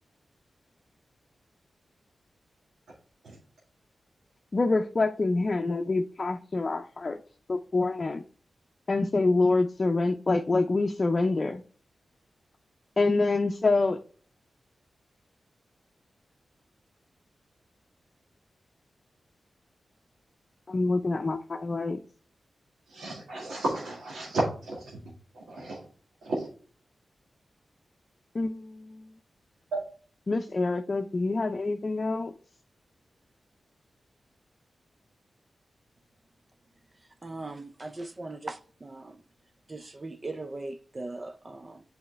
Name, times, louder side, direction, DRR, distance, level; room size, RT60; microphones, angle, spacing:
voice 1, 4.5-7.2 7.5-8.2 8.9-11.6 13.0-14.0 20.7-22.0 28.3-29.1 30.3-32.3, left 3 dB, 50° left, 0.6 m, -26 dB
voice 2, 22.9-25.0 25.3-25.9 26.2-26.5 29.7-29.8, right 2 dB, 90° right, 1.9 m, -32 dB
voice 3, 37.2-39.2 39.7-41.8, right 2 dB, 40° right, 0.6 m, -39 dB
7.9 x 4.3 x 3.2 m
cardioid pair, 45°, 0 cm